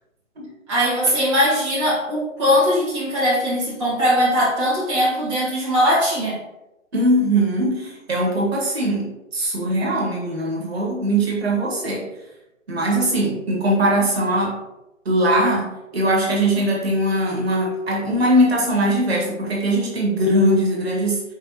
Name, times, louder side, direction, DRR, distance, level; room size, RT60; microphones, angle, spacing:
voice 1, 0.7-6.4, equal, 25° right, -8 dB, 1.1 m, -20 dB
voice 2, 6.9-12.1 12.7-14.6 15.0-21.2, right 1 dB, 50° right, -2 dB, 1.6 m, -21 dB
4.9 x 3.6 x 2.8 m, 0.93 s
figure-of-eight pair, 140°, 39 cm